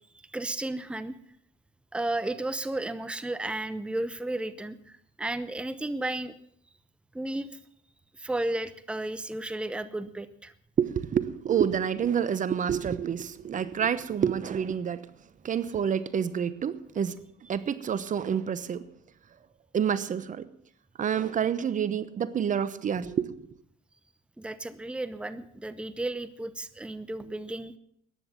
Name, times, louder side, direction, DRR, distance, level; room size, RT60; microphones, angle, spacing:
voice 1, 0.3-1.1 1.9-6.4 7.1-7.6 8.2-10.5 24.4-27.7, right 2 dB, 5° right, 13 dB, 0.9 m, -33 dB
voice 2, 10.8-15.1 15.4-17.2 17.5-18.8 19.7-20.5 21.0-23.5, right 8 dB, 40° right, 16 dB, 0.9 m, -28 dB
14.5 x 10.0 x 7.3 m, 0.70 s
supercardioid pair, 85°, 21 cm